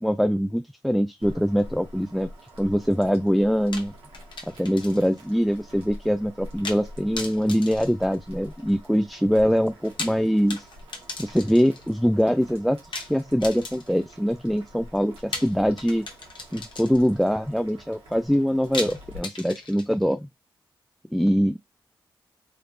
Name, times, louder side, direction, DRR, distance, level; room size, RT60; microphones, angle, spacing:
voice 1, 0.0-2.3 2.6-3.9 4.6-10.7 11.2-16.1 16.5-20.3 21.1-21.6, equal, ahead, 0.3 m, -23 dB
Boiling, 1.2-19.2, equal, 90° right, 1.3 m, -47 dB
sound 1, 3.7-5.2 5.5-5.6 6.6-6.9 7.2-8.7 9.7-11.9 12.9-14.1 15.3-17.2 18.7-20.1, left 3 dB, 60° left, 1.1 m, -37 dB
3.2 x 2.4 x 3.2 m
cardioid pair, 50°, 9 cm